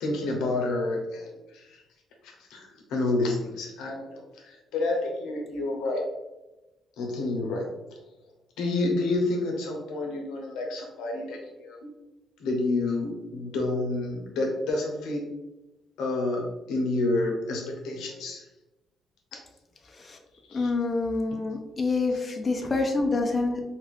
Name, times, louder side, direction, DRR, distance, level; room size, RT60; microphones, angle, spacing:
voice 1, 0.0-1.8 2.2-6.0 7.0-7.7 8.6-11.8 12.4-15.3 16.0-18.4 20.4-20.7 22.6-22.7, left 2 dB, 90° left, 1 dB, 0.8 m, -29 dB
voice 2, 19.9-20.2 20.5-23.6, left 3 dB, 30° left, 2 dB, 0.5 m, -27 dB
2.8 x 2.5 x 3.2 m, 1.0 s
cardioid pair, 90°, 0 cm